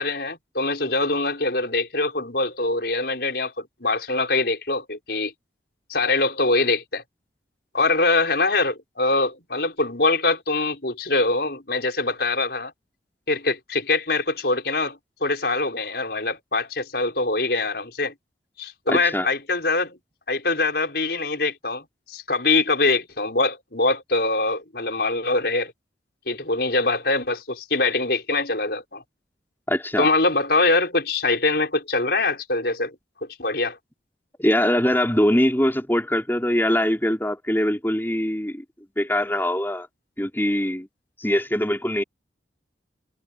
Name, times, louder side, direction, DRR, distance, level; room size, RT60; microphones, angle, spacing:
voice 1, 0.0-5.3 5.9-7.0 7.7-12.7 13.3-18.1 18.6-20.0 20.3-25.7 26.3-29.0 30.0-32.9 33.2-33.8, left 3 dB, 60° left, 6.0 m, -23 dB
voice 2, 18.9-19.3 29.7-30.1 34.4-38.6 39.0-39.9 40.2-40.9 41.2-42.0, equal, 10° left, 5.1 m, -22 dB
head